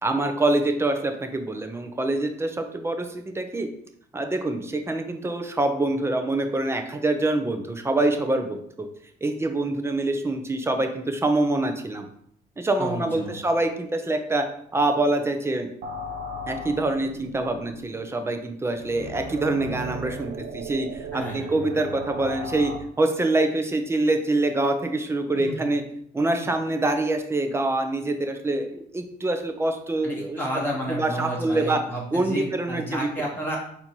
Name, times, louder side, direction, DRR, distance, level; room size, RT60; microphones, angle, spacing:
voice 1, 0.0-3.7 4.1-8.9 9.2-12.1 12.6-14.4 14.7-15.7 16.5-22.7 23.0-25.8 26.1-30.4 30.9-31.8 32.1-33.0, right 2 dB, 15° right, 5 dB, 0.5 m, -25 dB
voice 2, 12.8-13.4 21.1-21.5 25.4-25.7 26.4-26.5 30.0-33.6, equal, 10° left, -4 dB, 1.2 m, -31 dB
sound 1, 15.8-22.8, right 1 dB, 70° right, 0.6 m, -36 dB
4.4 x 2.7 x 4.4 m, 0.69 s
cardioid pair, 110°, 17 cm